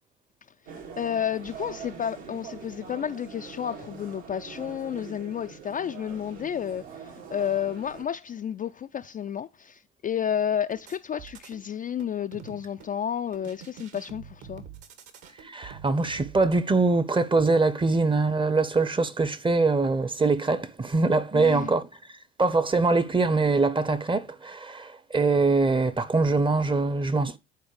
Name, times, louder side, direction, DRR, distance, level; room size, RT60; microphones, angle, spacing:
sound 1, 0.7-8.0, right 6 dB, 75° right, 2.2 m, -43 dB
voice 1, 1.0-14.6 21.3-21.7, left 9 dB, 25° left, 0.4 m, -31 dB
sound 2, 10.7-11.6 12.0-12.9 13.3-16.5, right 8 dB, 55° right, 1.5 m, -46 dB
voice 2, 15.4-21.8 22.4-27.3, right 3 dB, 15° right, 0.8 m, -23 dB
9.4 x 4.3 x 4.8 m
hypercardioid pair, 65°, 33 cm